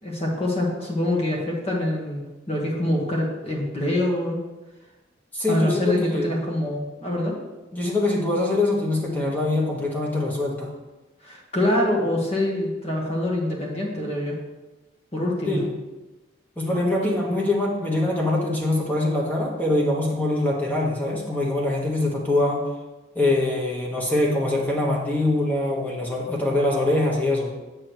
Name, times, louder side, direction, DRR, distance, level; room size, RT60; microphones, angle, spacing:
voice 1, 0.0-4.4 5.5-7.3 11.2-14.4 15.1-15.6 17.0-17.1, left 1 dB, 35° left, -2 dB, 1.5 m, -25 dB
voice 2, 5.3-6.3 7.7-10.7 15.5-15.6 16.6-22.7 23.1-27.5, left 2 dB, 10° left, -2 dB, 1.2 m, -23 dB
7.4 x 6.4 x 3.1 m, 1.1 s
head